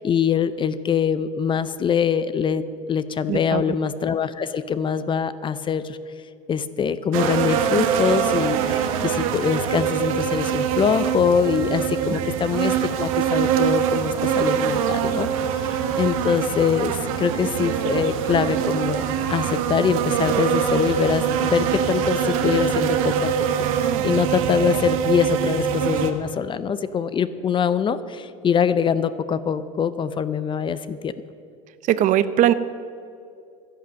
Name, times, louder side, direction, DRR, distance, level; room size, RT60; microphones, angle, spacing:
voice 1, 0.0-6.0 6.5-19.0 19.3-23.3 23.8-31.1, left 7 dB, 30° left, 14 dB, 0.6 m, -23 dB
voice 2, 3.3-3.6 12.1-12.2 31.9-32.5, right 11 dB, 45° right, 14 dB, 0.6 m, -19 dB
sound 1, 7.1-26.1, right 8 dB, 80° right, 1.1 m, -23 dB
12.0 x 10.5 x 6.4 m, 2.4 s
supercardioid pair, 100°, 17 cm